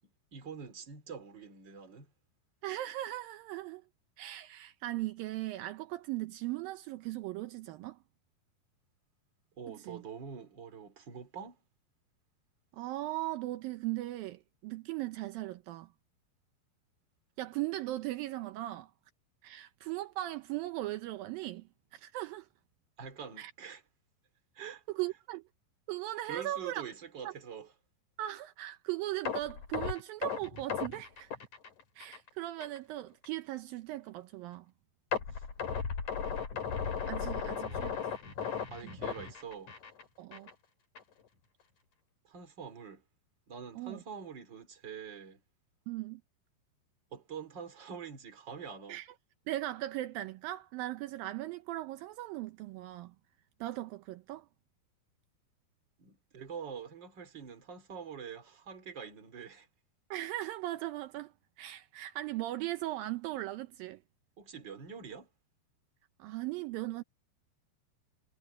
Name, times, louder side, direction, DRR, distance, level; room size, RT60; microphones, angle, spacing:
voice 1, 0.3-2.1 9.6-11.6 23.0-23.8 24.5-24.8 26.3-27.7 35.3-35.4 37.2-38.0 38.7-39.7 42.2-43.0 43.5-45.4 47.1-49.0 56.0-59.7 64.4-65.3, right 7 dB, 30° right, 3.0 m, -45 dB
voice 2, 2.6-3.8 4.2-8.0 9.7-10.0 12.7-15.9 17.4-18.9 19.4-21.7 21.9-22.5 23.4-23.5 24.9-25.4 25.9-26.9 27.2-27.3 28.2-31.3 32.0-34.7 37.1-38.0 38.8-38.9 40.2-40.5 43.8-44.0 45.9-46.2 48.9-49.1 49.5-53.1 53.6-54.5 60.1-64.0 66.2-67.0, right 16 dB, 85° right, 2.0 m, -38 dB
sound 1, 29.3-32.3 32.6-32.8 33.2-33.3 35.1-40.0 40.3-40.5 41.0-41.1, left 7 dB, 45° left, 4.6 m, -36 dB
omnidirectional pair, 5.2 m